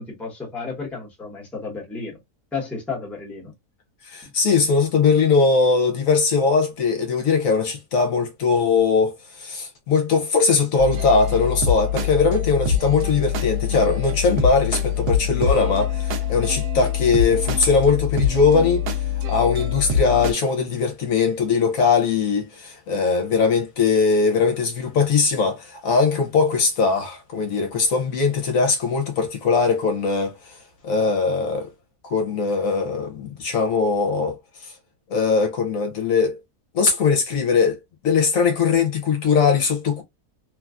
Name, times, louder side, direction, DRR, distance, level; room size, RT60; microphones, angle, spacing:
voice 1, 0.0-2.2 2.5-3.5 4.2-4.3 12.7-12.8, left 4 dB, ahead, 0.8 m, -32 dB
voice 2, 4.0-18.8 19.3-30.6 30.8-31.7 32.0-34.7 35.1-36.4 36.7-37.8 38.0-40.0, left 5 dB, 70° left, 1.0 m, -20 dB
sound 1, 10.8-20.3, left 7 dB, 85° right, 1.2 m, -24 dB
3.1 x 2.3 x 2.3 m
omnidirectional pair, 1.6 m